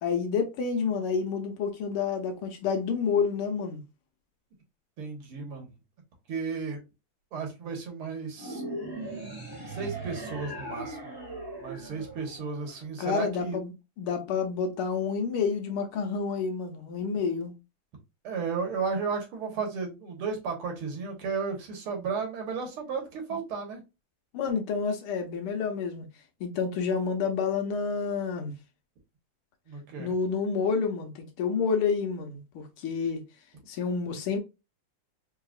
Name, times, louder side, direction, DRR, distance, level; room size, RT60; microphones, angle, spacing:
voice 1, 0.0-3.8 13.0-13.7 14.0-17.5 24.3-26.1 26.4-28.5 30.0-33.2 33.7-34.4, left 5 dB, 80° left, 1.7 m, -29 dB
voice 2, 5.0-5.7 6.3-6.8 7.3-8.6 9.5-11.0 11.6-13.6 18.2-23.8 29.7-30.1, right 5 dB, 80° right, 2.1 m, -34 dB
sound 1, 8.4-12.9, right 2 dB, 10° right, 1.2 m, -39 dB
4.9 x 2.8 x 2.4 m
omnidirectional pair, 2.4 m